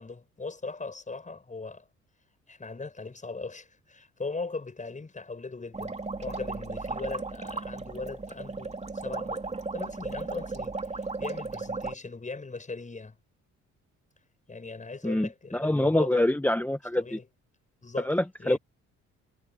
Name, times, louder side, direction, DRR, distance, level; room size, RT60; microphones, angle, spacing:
voice 1, 0.0-1.9 2.5-5.9 6.2-9.4 9.7-13.2 14.5-16.3 17.0-17.3 17.8-18.1 18.4-18.6, left 3 dB, 25° left, 7.0 m, -39 dB
sound 1, 5.7-11.9, right 3 dB, 20° right, 2.7 m, -35 dB
voice 2, 15.0-17.2 18.0-18.6, left 1 dB, 5° left, 1.2 m, -26 dB
cardioid pair, 90°, 30 cm